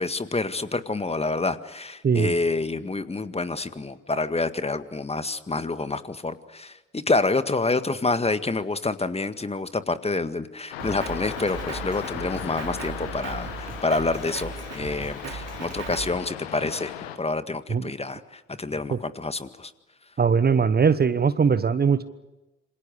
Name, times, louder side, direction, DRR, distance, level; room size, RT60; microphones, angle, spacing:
voice 1, 0.0-16.9 17.2-19.7, left 3 dB, 20° left, 12 dB, 1.8 m, -28 dB
voice 2, 2.0-2.3 17.7-17.9 18.9-19.0 20.2-22.0, right 6 dB, 30° right, 14 dB, 1.2 m, -20 dB
sound 1, 10.7-17.2, left 10 dB, 75° left, 1.6 m, -37 dB
Drum kit, 10.8-16.1, right 7 dB, 55° right, 2.9 m, -38 dB
27.5 x 26.5 x 6.7 m, 1.0 s
figure-of-eight pair, 40°, 30 cm